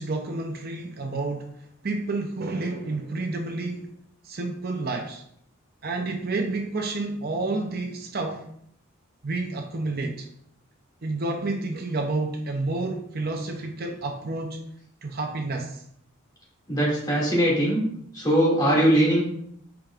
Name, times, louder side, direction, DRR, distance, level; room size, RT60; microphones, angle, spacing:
voice 1, 0.0-1.5 1.8-3.9 4.2-5.2 5.8-8.4 9.2-10.3 11.0-14.6 15.0-15.8, right 2 dB, 45° right, 3 dB, 0.7 m, -29 dB
voice 2, 16.7-17.8 18.1-19.2, right 1 dB, 20° left, -5 dB, 2.2 m, -21 dB
9.0 x 5.0 x 2.5 m, 0.70 s
head